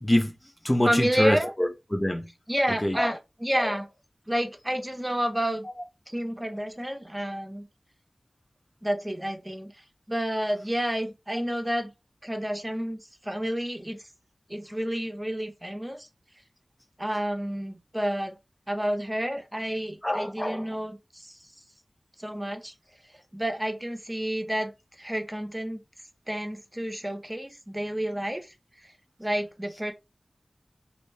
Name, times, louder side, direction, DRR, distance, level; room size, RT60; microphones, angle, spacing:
voice 1, 0.0-2.3 2.8-3.2 3.6-3.7 20.0-20.7, left 1 dB, 20° left, 0.5 m, -26 dB
voice 2, 0.9-1.5 2.5-3.9 4.3-5.7 6.1-7.7 8.8-9.8 10.1-11.9 12.2-14.0 14.5-16.1 17.0-18.4 18.7-21.4 22.2-22.7 23.3-25.8 26.3-28.9 29.2-29.9, equal, 20° right, 0.8 m, -30 dB
2.9 x 2.7 x 3.2 m
wide cardioid pair, 45°, 0 cm